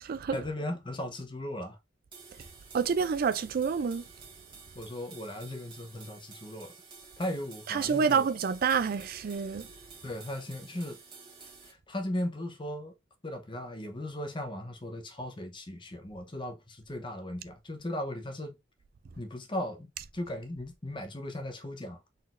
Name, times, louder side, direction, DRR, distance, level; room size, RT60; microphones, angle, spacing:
voice 1, 0.3-1.8 4.7-6.7 7.2-8.2 10.0-11.0 11.6-12.9 13.2-18.6 19.2-22.0, left 1 dB, 25° left, 0.8 m, -37 dB
sound 1, 2.1-11.7, right 5 dB, 30° right, 1.4 m, -51 dB
voice 2, 2.7-4.0 7.7-9.7, right 6 dB, 55° right, 0.4 m, -28 dB
4.0 x 3.9 x 2.5 m
head